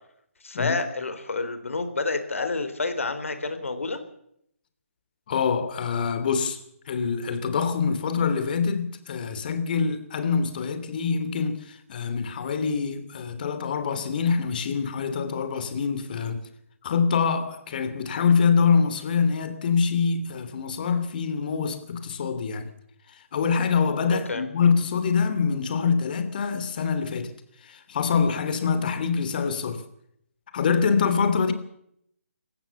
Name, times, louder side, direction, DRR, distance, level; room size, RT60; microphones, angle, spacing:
voice 1, 0.4-4.0 24.1-24.4, left 3 dB, 65° left, 3.9 m, -29 dB
voice 2, 5.3-16.4 16.8-22.7 23.1-27.3 27.6-29.8 30.5-31.5, left 5 dB, 35° left, 3.0 m, -25 dB
26.5 x 15.0 x 7.1 m
figure-of-eight pair, 145°, 8 cm